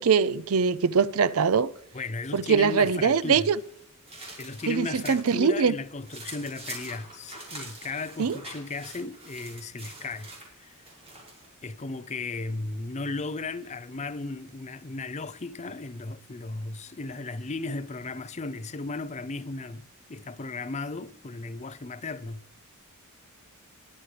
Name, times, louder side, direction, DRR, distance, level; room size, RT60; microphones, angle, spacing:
voice 1, 0.0-1.7 2.3-3.6 4.7-5.7 8.2-8.4, right 6 dB, 70° right, 0.5 m, -22 dB
voice 2, 1.9-3.5 4.4-10.3 10.6-10.7 11.6-22.4, left 3 dB, 30° left, 0.6 m, -35 dB
sound 1, 3.2-5.4 5.7-11.5, right 2 dB, 30° right, 6.2 m, -45 dB
21.5 x 9.9 x 3.3 m
head